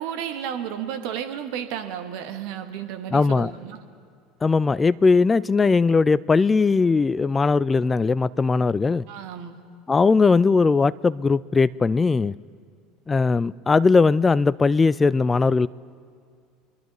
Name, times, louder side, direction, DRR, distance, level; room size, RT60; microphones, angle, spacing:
voice 1, 0.0-3.8 9.1-9.6, right 9 dB, 60° right, 1.0 m, -32 dB
voice 2, 3.1-3.5 4.4-9.0 9.9-12.4 13.1-15.7, left 4 dB, 20° left, 0.3 m, -19 dB
26.0 x 11.0 x 3.0 m
figure-of-eight pair, 70°, 0 cm